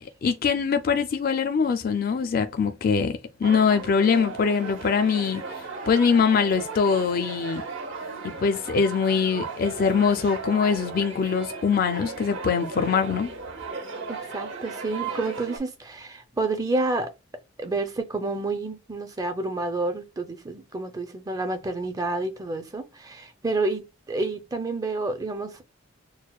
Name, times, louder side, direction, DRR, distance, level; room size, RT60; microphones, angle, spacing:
voice 1, 0.2-5.4 5.9-7.6 8.2-13.3, left 6 dB, 45° left, 0.4 m, -23 dB
sound 1, 3.4-15.6, right 4 dB, 65° right, 0.9 m, -36 dB
voice 2, 14.1-17.1 17.6-25.6, right 2 dB, 20° right, 0.5 m, -29 dB
6.3 x 2.1 x 2.3 m
head